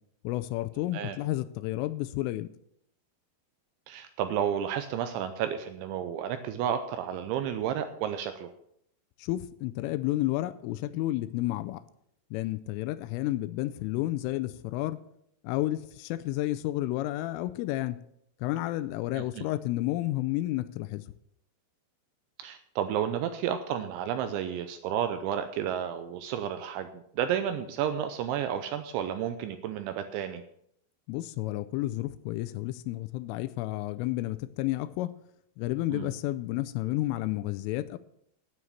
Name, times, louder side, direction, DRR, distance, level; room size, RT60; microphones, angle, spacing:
voice 1, 0.2-2.5 9.2-11.8 12.3-15.0 15.4-18.0 18.4-21.1 31.1-35.1 35.6-38.0, left 16 dB, 85° left, 3.0 m, -31 dB
voice 2, 3.9-8.5 19.2-19.4 22.4-30.4 35.9-36.1, right 9 dB, 80° right, 2.7 m, -31 dB
9.5 x 9.4 x 7.1 m
omnidirectional pair, 5.9 m